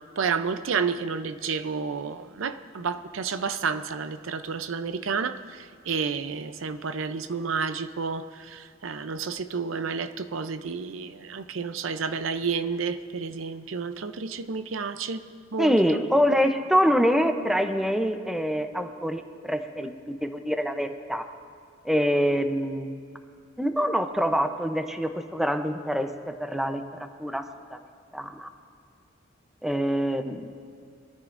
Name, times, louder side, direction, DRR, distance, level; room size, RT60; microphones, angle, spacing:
voice 1, 0.0-15.2 15.5-16.0, right 5 dB, 75° right, 0.6 m, -30 dB
voice 2, 15.6-21.3 21.8-23.0 23.6-27.4 27.7-27.8 28.1-28.5 29.6-30.5, equal, ahead, 0.6 m, -25 dB
23.0 x 13.5 x 2.5 m
head